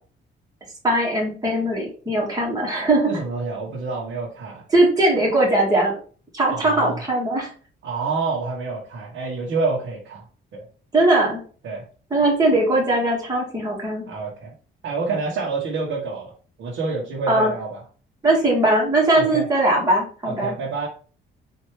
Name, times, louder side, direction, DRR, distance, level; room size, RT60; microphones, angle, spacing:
voice 1, 0.8-3.1 4.7-6.0 6.3-7.5 10.9-11.4 12.1-14.1 17.3-17.5 18.2-20.5, right 1 dB, 20° right, -3 dB, 1.7 m, -20 dB
voice 2, 3.1-4.6 6.5-7.0 7.8-10.2 11.6-11.8 14.1-14.5 14.8-16.3 16.6-17.8 19.1-19.4 20.2-20.9, right 4 dB, 75° right, -5 dB, 1.2 m, -27 dB
4.4 x 2.8 x 3.2 m, 0.40 s
cardioid pair, 90°, 20 cm